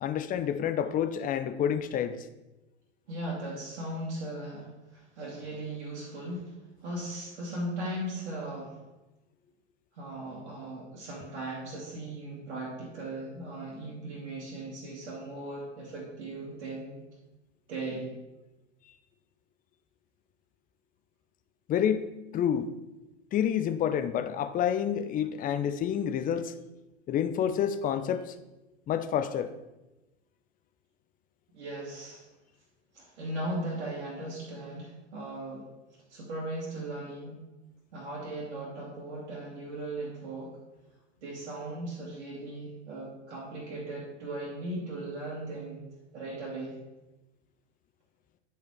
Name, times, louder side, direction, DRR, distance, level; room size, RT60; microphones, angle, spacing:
voice 1, 0.0-2.2 21.7-22.7 23.3-26.5 27.1-28.3 28.9-29.5, left 9 dB, 25° left, 11 dB, 0.6 m, -28 dB
voice 2, 3.1-8.8 9.9-17.0 17.7-18.1 31.5-32.2 32.9-35.7 36.1-37.4 37.9-40.6 41.2-45.8 46.1-46.8, right 1 dB, 70° right, -5 dB, 2.2 m, -38 dB
9.6 x 4.9 x 4.8 m, 1.0 s
hypercardioid pair, 95°, 35 cm